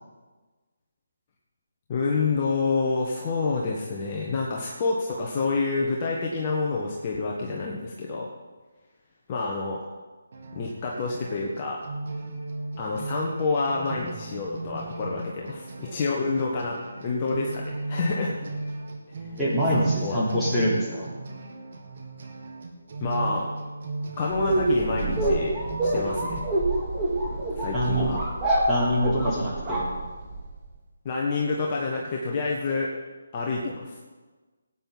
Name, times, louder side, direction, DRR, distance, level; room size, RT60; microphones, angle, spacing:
voice 1, 1.9-8.3 9.3-9.8 10.5-11.8 12.8-18.5 19.7-20.2 23.0-23.5 24.2-25.6 25.8-26.5 27.5-28.2 31.0-32.9 33.3-34.0, left 3 dB, 30° left, -2 dB, 1.4 m, -28 dB
sound 1, 10.3-26.4, right 2 dB, 50° right, 2.0 m, -37 dB
voice 2, 19.4-21.1 27.7-28.1 28.7-29.9, equal, ahead, -12 dB, 4.0 m, -24 dB
sound 2, 24.3-30.6, right 2 dB, 20° right, 2.6 m, -26 dB
17.5 x 9.2 x 4.1 m, 1.3 s
figure-of-eight pair, 150°, 0 cm